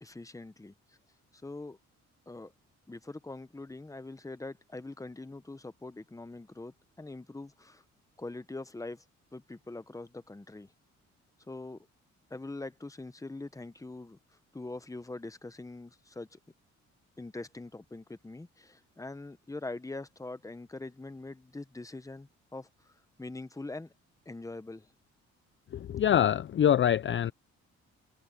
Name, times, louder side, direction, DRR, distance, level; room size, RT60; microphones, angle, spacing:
voice 1, 0.0-1.0 1.3-1.8 2.3-2.5 2.9-7.8 8.2-9.0 9.3-10.7 11.5-11.9 12.3-14.2 14.5-16.4 17.2-22.9 23.2-23.9 24.2-24.9, left 2 dB, 10° left, 1.1 m, -43 dB
voice 2, 25.7-27.3, left 10 dB, 40° left, 0.5 m, -25 dB
cardioid pair, 90°, 30 cm